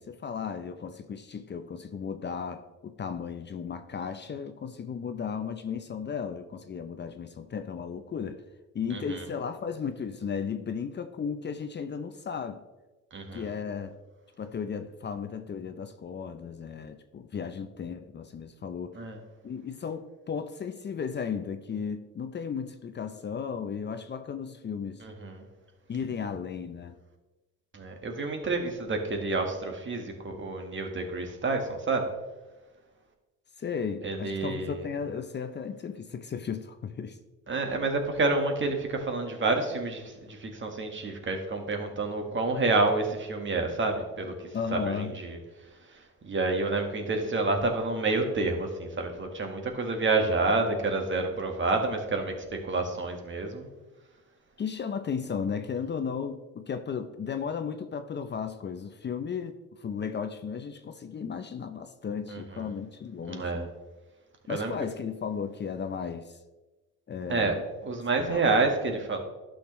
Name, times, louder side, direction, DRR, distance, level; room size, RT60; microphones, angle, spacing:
voice 1, 0.0-8.4 8.7-12.6 13.3-14.0 14.4-19.0 19.4-25.1 25.9-27.0 33.6-37.2 44.5-45.2 54.6-63.7 64.5-66.4 67.1-67.7 68.2-68.4, left 6 dB, 35° left, 8 dB, 0.6 m, -35 dB
voice 2, 8.9-9.2 13.1-13.5 18.9-19.2 25.0-25.4 27.7-32.1 34.0-34.8 37.5-45.4 45.9-53.7 62.3-62.7 63.3-63.7 64.5-64.7 67.3-67.5 67.8-69.2, right 3 dB, 40° right, 4 dB, 1.5 m, -29 dB
11.5 x 6.4 x 3.1 m, 1.1 s
cardioid pair, 90°, 30 cm